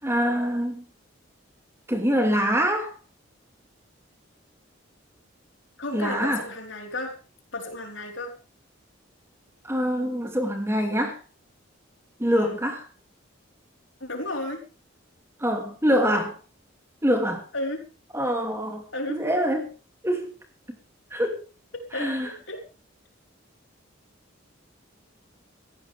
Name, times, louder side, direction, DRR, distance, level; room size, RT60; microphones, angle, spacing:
voice 1, 0.0-0.9 1.9-3.0 5.9-6.4 9.6-11.2 12.2-12.8 15.4-16.3 17.0-17.4 18.1-18.8 19.1-19.7 20.0-20.3 20.7-20.8 21.1-21.4 21.9-22.3, equal, 15° right, 3 dB, 2.9 m, -24 dB
voice 2, 5.8-7.2 7.5-8.3 12.3-12.6 14.0-14.6 15.9-16.3 17.5-17.8 18.9-19.2 21.7-22.6, left 2 dB, 65° left, 3 dB, 4.5 m, -33 dB
18.5 x 15.0 x 3.6 m, 0.34 s
head